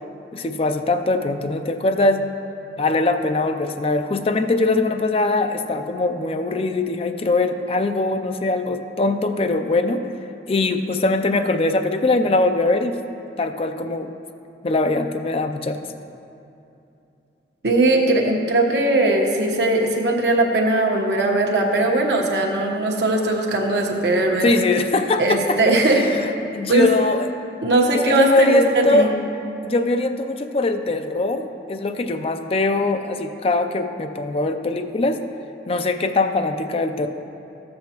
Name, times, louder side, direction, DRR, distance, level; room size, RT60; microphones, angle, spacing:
voice 1, 0.3-2.2 2.8-10.0 10.5-13.0 13.4-14.1 14.6-15.8 24.4-25.4 25.9-26.3 26.5-27.3 27.9-29.1 29.6-35.2 35.7-37.1, left 2 dB, 30° left, 7 dB, 0.4 m, -21 dB
voice 2, 17.6-24.5 25.2-26.1 26.7-26.9 27.6-28.6 28.9-29.1, right 2 dB, 70° right, 0 dB, 1.1 m, -19 dB
13.5 x 7.6 x 2.9 m, 2.8 s
head